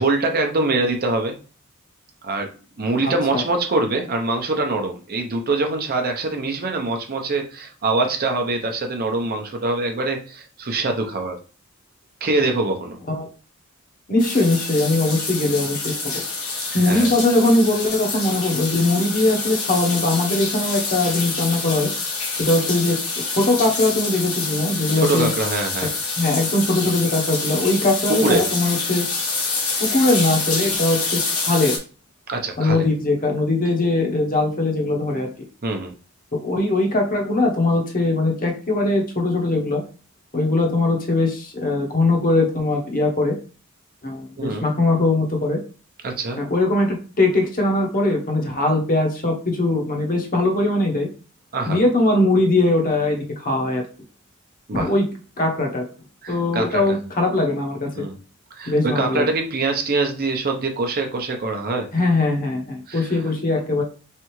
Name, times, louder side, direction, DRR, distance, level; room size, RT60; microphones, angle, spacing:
voice 1, 0.0-1.4 2.2-2.5 2.8-11.4 12.2-13.0 16.7-17.1 24.9-25.9 28.2-28.4 32.3-32.8 35.6-35.9 44.4-44.7 46.0-46.4 51.5-51.8 54.7-54.9 56.2-57.0 57.9-58.2 58.6-61.9 62.9-63.1, right 3 dB, 45° right, 4 dB, 0.7 m, -24 dB
voice 2, 3.0-3.4 13.1-13.3 14.1-16.2 16.7-21.9 22.4-23.0 23.4-25.3 26.2-29.1 29.8-31.7 32.6-35.3 36.3-39.8 40.3-43.3 44.0-45.6 46.4-51.1 51.7-53.8 54.7-55.1 55.4-55.8 56.3-58.0 58.7-59.3 61.9-63.8, left 2 dB, 40° left, 2 dB, 0.9 m, -21 dB
sound 1, 14.2-31.8, left 4 dB, 80° left, 1.3 m, -27 dB
3.7 x 3.3 x 3.1 m, 0.37 s
head